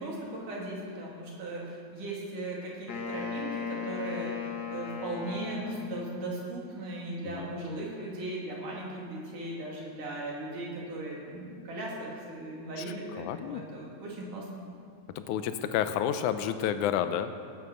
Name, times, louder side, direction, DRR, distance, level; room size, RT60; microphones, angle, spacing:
voice 1, 0.0-14.6, right 2 dB, 80° right, -3 dB, 4.2 m, -38 dB
Wind instrument woodwind instrument, 2.9-6.4, left 6 dB, 60° left, 1.0 m, -37 dB
voice 2, 13.2-13.6 15.2-17.3, left 9 dB, 80° left, 10 dB, 2.1 m, -30 dB
18.0 x 9.1 x 6.3 m, 2.3 s
omnidirectional pair, 3.7 m